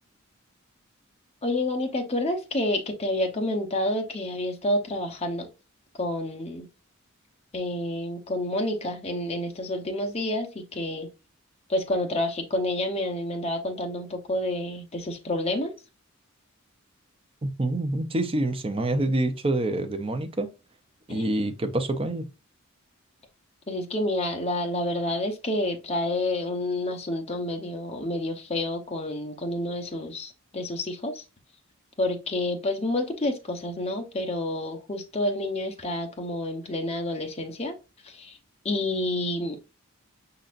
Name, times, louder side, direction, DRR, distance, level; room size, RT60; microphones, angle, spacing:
voice 1, 1.4-5.5 6.0-6.7 7.5-11.1 11.7-15.7 21.1-21.2 23.7-31.2 32.0-37.8 38.0-38.4 38.6-39.6, left 1 dB, 30° left, 0.8 m, -29 dB
voice 2, 17.4-20.5 21.1-22.2, right 1 dB, 25° right, 0.6 m, -26 dB
5.4 x 3.9 x 2.5 m
head